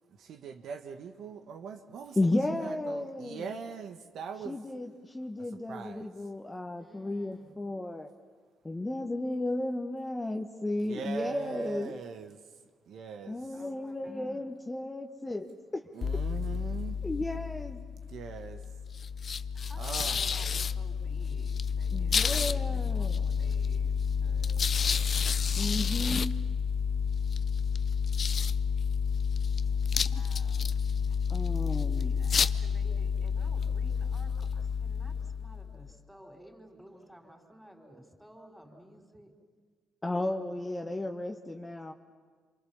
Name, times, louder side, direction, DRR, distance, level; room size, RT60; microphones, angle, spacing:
voice 1, 0.1-4.6 5.4-6.3 10.8-12.6 12.9-13.6 15.9-17.0 18.1-18.7 19.8-20.4, right 5 dB, 70° right, 6 dB, 1.7 m, -41 dB
voice 2, 2.2-3.4 4.4-8.1 8.6-12.0 13.3-15.5 15.7-15.8 17.0-17.9 21.9-23.2 25.6-26.3 31.3-32.1 40.0-41.9, left 2 dB, 15° left, 4 dB, 1.4 m, -34 dB
voice 3, 6.8-7.6 13.5-14.4 16.3-16.7 17.5-17.6 19.5-23.9 24.2-25.1 25.6-26.5 30.0-30.7 31.1-31.2 32.0-39.3 40.8-41.1, equal, ahead, 3 dB, 4.7 m, -54 dB
sound 1, 16.0-35.9, left 6 dB, 45° left, 0.7 m, -30 dB
28.0 x 26.0 x 7.2 m, 1.5 s
cardioid pair, 90°, 0 cm